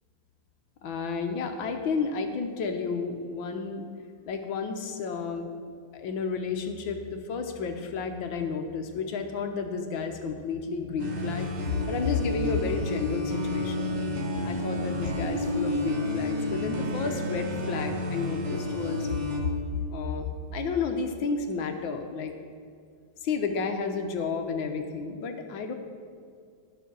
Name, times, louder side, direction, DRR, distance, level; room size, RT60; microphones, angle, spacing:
voice 1, 0.8-3.9 4.3-5.5 5.9-7.0 7.3-13.9 14.4-19.2 19.9-22.3 23.2-25.7, left 5 dB, 70° left, 5 dB, 1.5 m, -31 dB
sound 1, 11.0-19.4, left 1 dB, 40° right, 1.2 m, -31 dB
11.5 x 6.0 x 6.2 m, 2.2 s
omnidirectional pair, 2.3 m